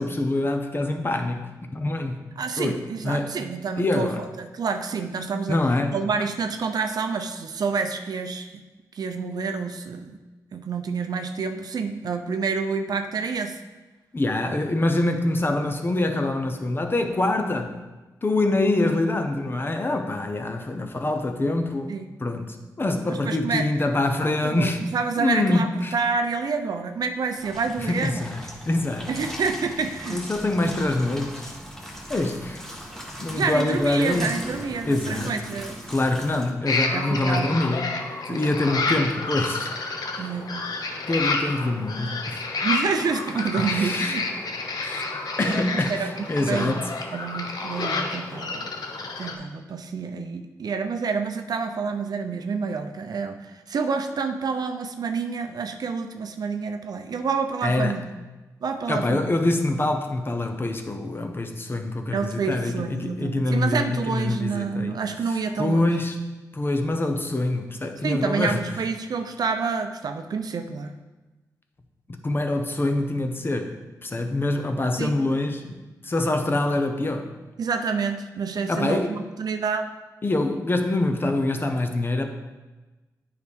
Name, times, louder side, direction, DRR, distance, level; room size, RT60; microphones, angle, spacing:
voice 1, 0.0-2.2 2.6-3.3 3.8-4.2 5.5-6.0 14.1-17.7 18.2-24.8 25.2-25.9 27.8-28.4 28.7-29.1 30.1-31.5 32.1-32.6 33.2-34.3 34.9-35.4 35.9-37.9 38.3-39.7 40.1-40.3 41.1-42.4 43.6-44.2 44.8-45.0 45.4-46.8 57.6-58.0 58.9-64.9 65.6-66.2 66.5-68.6 72.1-77.3 78.7-79.1 80.2-82.3, left 2 dB, 30° left, 5 dB, 0.9 m, -25 dB
voice 2, 2.4-5.6 5.9-8.6 8.9-10.2 10.5-13.6 21.9-22.1 23.1-23.7 24.4-28.2 29.1-30.2 33.3-35.8 36.9-37.6 38.3-39.1 40.2-40.6 41.7-41.8 42.6-44.3 45.4-46.8 47.1-48.7 49.2-58.1 58.6-59.2 62.1-65.9 68.0-70.9 75.0-75.2 77.6-79.8, right 5 dB, 65° right, 7 dB, 0.6 m, -28 dB
sound 1, 27.4-36.5, equal, 5° left, 1.5 m, -38 dB
sound 2, 36.7-49.4, left 3 dB, 65° left, 0.9 m, -30 dB
9.2 x 4.8 x 3.6 m, 1.2 s
cardioid pair, 65°, 7 cm